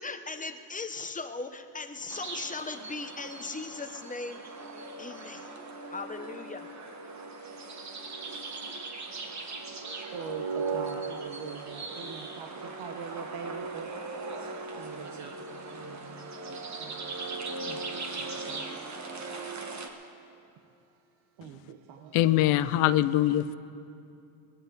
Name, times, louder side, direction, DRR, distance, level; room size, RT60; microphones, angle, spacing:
voice 1, 0.0-4.5 5.0-5.6 5.9-6.7, left 3 dB, 15° left, 8 dB, 0.8 m, -38 dB
sound 1, 2.1-19.9, right 3 dB, 35° right, 1.5 m, -38 dB
voice 2, 9.4-13.9 14.8-17.1 17.7-18.9 21.4-22.4, right 6 dB, 70° right, 5 dB, 1.0 m, -44 dB
voice 3, 22.1-23.6, left 13 dB, 90° left, 15 dB, 0.7 m, -23 dB
21.0 x 15.5 x 4.0 m, 2.6 s
cardioid pair, 110°, 49 cm